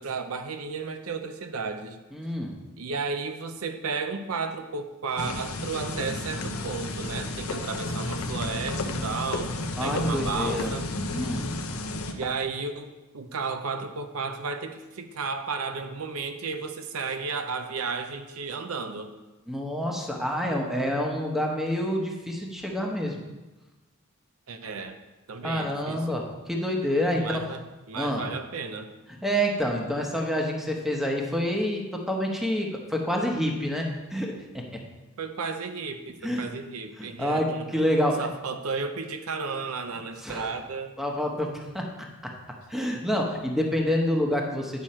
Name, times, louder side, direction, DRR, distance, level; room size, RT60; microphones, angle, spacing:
voice 1, 0.0-2.0 2.8-9.5 9.8-10.9 12.1-12.9 13.1-19.1 24.5-25.0 25.3-26.2 27.2-27.6 27.9-28.9 35.2-37.8 38.2-41.0, right 4 dB, 75° right, 8 dB, 0.6 m, -33 dB
voice 2, 2.1-2.5 9.8-10.7 11.1-11.4 19.5-23.2 25.4-27.4 28.0-28.2 29.1-34.8 36.2-36.5 37.0-38.3 40.2-40.5 41.0-41.9 42.2-42.3 42.7-44.8, equal, ahead, 0 dB, 1.0 m, -28 dB
sound 1, 5.2-12.1, left 2 dB, 70° left, 0.8 m, -32 dB
9.4 x 6.2 x 4.3 m, 1.1 s
head